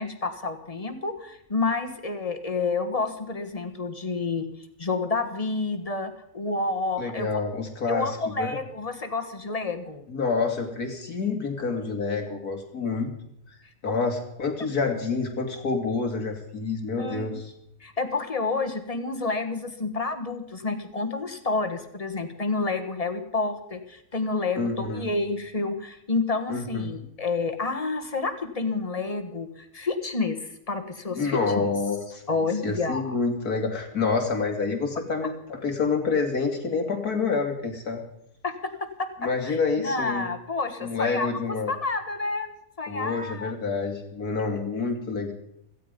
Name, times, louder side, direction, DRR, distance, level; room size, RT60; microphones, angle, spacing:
voice 1, 0.0-7.4 7.9-10.0 13.9-14.0 17.0-17.4 17.8-31.7 32.3-33.2 38.4-38.7 39.0-39.1 39.4-42.5 42.8-43.6, left 3 dB, 25° left, 8 dB, 1.5 m, -29 dB
voice 2, 7.0-8.1 8.4-8.6 10.1-13.1 13.8-17.4 24.6-25.1 26.5-26.9 31.1-32.2 32.6-38.0 39.2-40.3 40.8-41.7 42.9-45.3, left 4 dB, 85° left, 4 dB, 3.1 m, -28 dB
17.0 x 15.0 x 5.3 m, 0.75 s
omnidirectional pair, 1.6 m